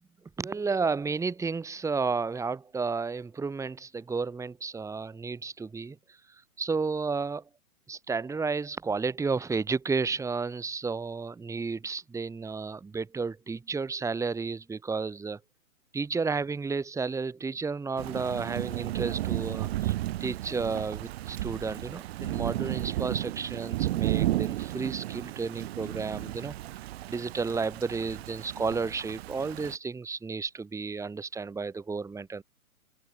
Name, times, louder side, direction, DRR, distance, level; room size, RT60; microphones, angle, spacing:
voice 1, 0.4-7.4 7.9-15.4 15.9-19.9 20.2-26.5 27.1-32.4, right 4 dB, 5° right, 3.3 m, -32 dB
Thunder / Rain, 18.0-29.8, right 15 dB, 45° right, 3.3 m, -33 dB
hypercardioid pair, 135°, 44 cm